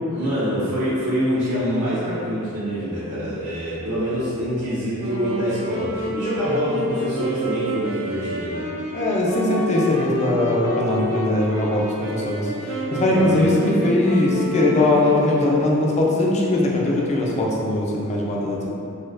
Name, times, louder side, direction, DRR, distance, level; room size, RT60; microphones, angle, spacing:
voice 1, 0.1-8.6 13.1-13.4, equal, 85° right, -14 dB, 1.0 m, -25 dB
Wind instrument woodwind instrument, 5.0-15.9, right 1 dB, 65° right, 0.6 m, -29 dB
voice 2, 8.9-18.7, left 2 dB, 30° left, -3 dB, 0.4 m, -20 dB
4.1 x 2.2 x 2.5 m, 2.8 s
head